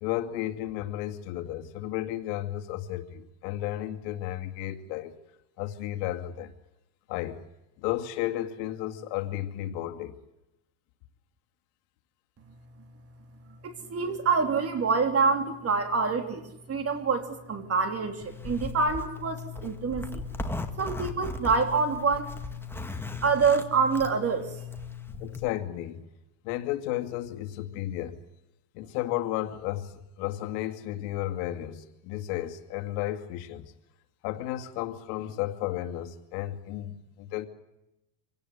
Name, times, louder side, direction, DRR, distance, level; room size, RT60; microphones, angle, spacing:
voice 1, 0.0-5.1 5.6-6.5 7.1-7.4 7.8-10.2 25.2-26.1 26.4-28.2 28.7-33.7 34.2-37.5, left 13 dB, 80° left, 2.4 m, -33 dB
voice 2, 13.6-20.2 20.8-22.3 23.2-24.6, right 5 dB, 30° right, 3.2 m, -26 dB
Zipper (clothing), 18.2-25.5, left 4 dB, 5° left, 2.0 m, -37 dB
26.0 x 18.0 x 9.9 m
cardioid pair, 130°, 46 cm